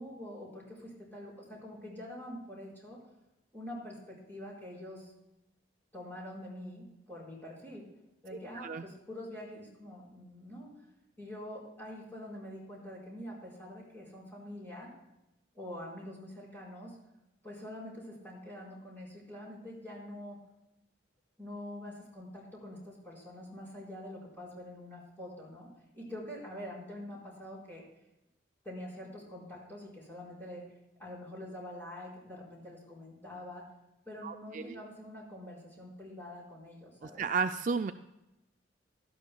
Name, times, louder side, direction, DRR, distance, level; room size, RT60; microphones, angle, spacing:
voice 1, 0.0-3.0 3.5-5.1 5.9-7.9 8.2-10.7 11.2-14.9 15.5-17.0 17.4-20.4 21.4-25.7 25.9-27.8 28.6-30.6 31.0-33.7 34.1-37.3, left 1 dB, 10° left, -6 dB, 4.3 m, -45 dB
voice 2, 34.2-34.8 37.0-37.9, right 5 dB, 45° right, 8 dB, 0.3 m, -33 dB
17.0 x 12.0 x 2.3 m, 0.94 s
head